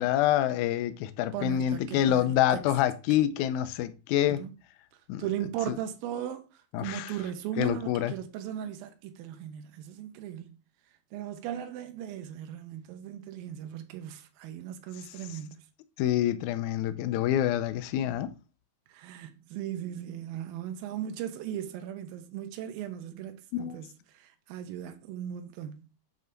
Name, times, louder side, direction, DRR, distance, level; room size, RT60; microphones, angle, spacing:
voice 1, 0.0-4.4 5.1-5.2 5.7-5.8 6.7-7.2 7.6-8.1 16.0-18.3 23.5-23.8, left 12 dB, 80° left, 1.8 m, -27 dB
voice 2, 1.3-2.6 4.3-4.5 5.2-10.5 11.1-15.6 18.9-25.8, right 10 dB, 85° right, 2.6 m, -37 dB
8.0 x 3.3 x 5.2 m
omnidirectional pair, 4.2 m